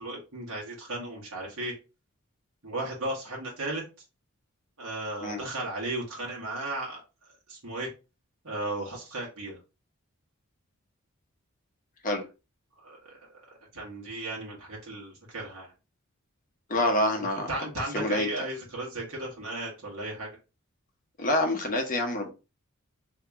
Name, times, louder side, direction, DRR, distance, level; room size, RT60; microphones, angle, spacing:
voice 1, 0.0-1.7 2.6-3.8 4.8-7.0 7.5-7.9 8.4-9.6 12.8-13.3 13.7-15.7 17.5-20.4, right 2 dB, 75° right, -3 dB, 1.4 m, -35 dB
voice 2, 16.7-17.5 17.9-18.3 21.2-22.3, left 1 dB, 35° left, 2 dB, 0.9 m, -26 dB
2.9 x 2.9 x 3.5 m, 0.30 s
head